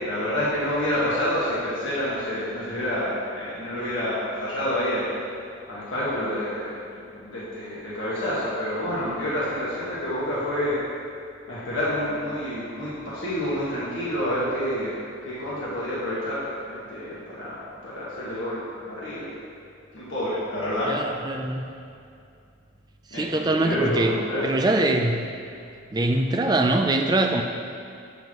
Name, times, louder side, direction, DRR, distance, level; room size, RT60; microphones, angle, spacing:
voice 1, 0.0-5.1 5.7-10.7 11.5-18.6 18.8-19.3 19.9-20.9 21.2-21.4 23.1-24.4, equal, 80° left, -9 dB, 1.6 m, -28 dB
voice 2, 20.9-21.7 23.1-24.1 24.4-25.2 25.9-27.4, right 2 dB, 20° right, 3 dB, 0.4 m, -23 dB
7.5 x 6.9 x 3.1 m, 2.5 s
head